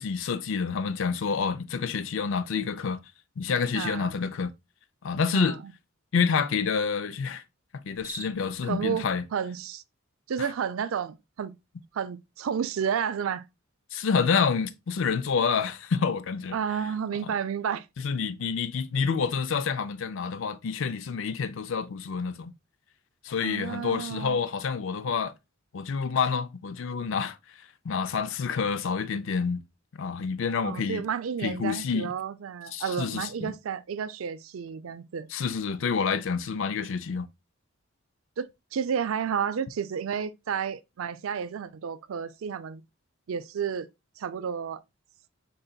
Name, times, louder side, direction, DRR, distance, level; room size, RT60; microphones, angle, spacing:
voice 1, 0.0-3.0 3.4-4.5 5.0-5.6 6.1-7.4 7.8-9.2 10.4-10.5 13.9-16.6 17.2-17.3 18.0-22.5 23.2-25.3 25.7-27.4 27.8-29.6 30.0-31.0 31.4-32.1 32.7-33.5 35.3-37.3, left 5 dB, 65° left, 0.4 m, -28 dB
voice 2, 3.7-4.2 5.3-5.7 8.6-9.8 10.3-11.5 11.9-13.5 16.5-17.9 23.4-24.4 30.6-35.3 38.4-38.5 38.7-42.8 43.3-43.9 44.2-44.8, right 7 dB, 75° right, 0.4 m, -31 dB
Cricket, 7.8-8.6, right 1 dB, 10° right, 0.9 m, -41 dB
5.3 x 3.9 x 2.3 m
head